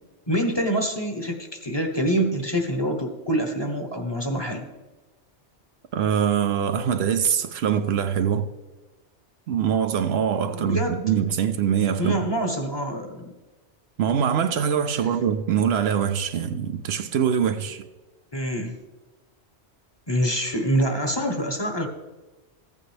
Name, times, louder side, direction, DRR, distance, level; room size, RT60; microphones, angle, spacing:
voice 1, 0.3-4.7 10.5-11.0 12.0-13.3 18.3-18.7 20.1-21.9, right 1 dB, 25° left, 0.9 m, -26 dB
voice 2, 5.9-8.5 9.5-12.2 14.0-17.9, right 8 dB, 70° right, 0.8 m, -23 dB
14.5 x 8.8 x 3.3 m
omnidirectional pair, 1.2 m